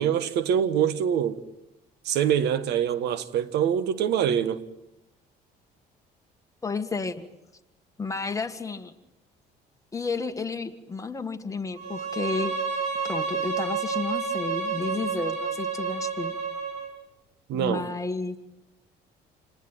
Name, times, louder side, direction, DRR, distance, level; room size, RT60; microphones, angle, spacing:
voice 1, 0.0-1.4 2.0-4.6 17.5-17.9, right 9 dB, 80° right, 1.5 m, -24 dB
voice 2, 6.6-7.3 8.0-8.9 9.9-12.5 13.0-16.3 17.5-18.4, left 4 dB, 20° left, 1.8 m, -32 dB
Bowed string instrument, 11.8-16.9, right 5 dB, 45° right, 5.4 m, -30 dB
28.0 x 20.0 x 9.2 m
cardioid pair, 110°, 17 cm